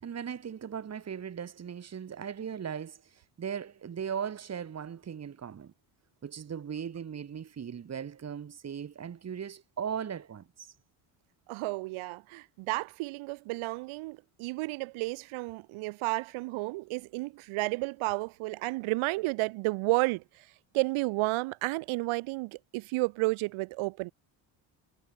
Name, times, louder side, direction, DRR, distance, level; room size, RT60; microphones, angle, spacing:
voice 1, 0.0-5.7 6.2-10.7, right 8 dB, 30° right, 5.2 m, -38 dB
voice 2, 11.5-20.5 20.7-24.1, right 23 dB, 80° right, 7.4 m, -32 dB
cardioid pair, 135°, 48 cm